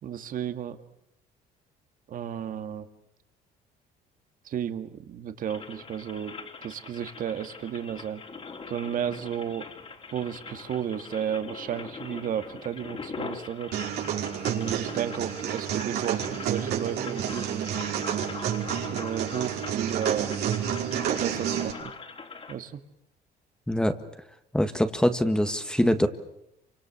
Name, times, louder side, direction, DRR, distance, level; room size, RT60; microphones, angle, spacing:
voice 1, 0.0-0.8 2.1-2.9 4.4-6.3 6.6-8.2 8.7-9.7 10.1-13.8 14.4-17.7 18.9-20.3 21.2-21.9 22.5-22.8, right 9 dB, 55° right, 8 dB, 2.0 m, -33 dB
sound 1, 5.5-22.5, left 4 dB, 35° left, 3.8 m, -42 dB
sound 2, 13.7-21.7, right 9 dB, 75° right, 5.3 m, -30 dB
voice 2, 23.7-24.0 24.5-26.1, left 1 dB, 5° left, 8 dB, 1.7 m, -23 dB
28.5 x 25.5 x 7.1 m, 0.82 s
cardioid pair, 110°, 17 cm